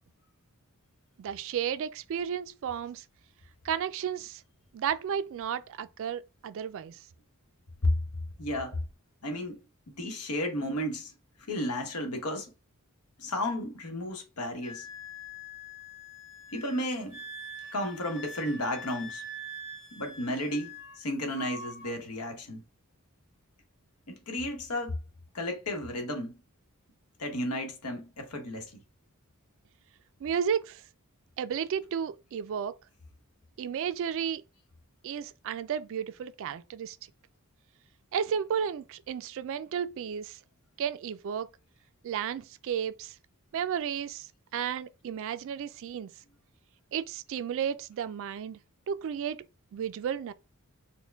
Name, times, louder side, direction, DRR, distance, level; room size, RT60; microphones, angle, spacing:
voice 1, 1.2-3.0 3.6-4.4 4.7-7.0 30.2-30.8 31.4-32.8 33.6-34.4 35.0-37.0 38.1-40.4 40.8-41.5 42.0-43.2 43.5-46.1 46.9-48.6 48.9-49.4 49.7-50.3, right 8 dB, 60° right, 0.3 m, -33 dB
voice 2, 8.4-8.8 9.2-9.6 9.9-11.1 11.5-12.5 13.2-14.9 16.5-17.2 17.7-19.2 19.9-22.6 24.1-24.9 25.3-26.4 27.2-28.8, left 1 dB, 90° left, 1.0 m, -33 dB
Wind instrument woodwind instrument, 14.6-21.0 21.3-22.0, equal, 50° left, 2.1 m, -44 dB
4.3 x 2.2 x 3.3 m
head